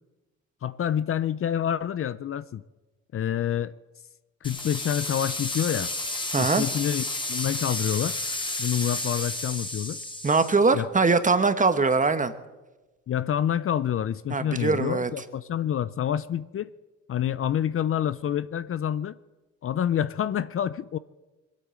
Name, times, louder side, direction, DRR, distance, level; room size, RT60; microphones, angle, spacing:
voice 1, 0.6-2.6 3.1-3.7 4.4-5.9 6.4-8.2 8.6-10.0 10.7-10.9 13.1-16.7 17.1-19.2 19.6-21.0, left 10 dB, 45° left, 16 dB, 0.6 m, -27 dB
sound 1, 4.4-10.5, left 2 dB, 15° left, 2.4 m, -31 dB
voice 2, 6.3-6.6 10.2-12.3 14.3-15.1, right 4 dB, 25° right, 10 dB, 1.3 m, -22 dB
22.0 x 8.6 x 7.6 m, 1.1 s
cardioid pair, 90°, 30 cm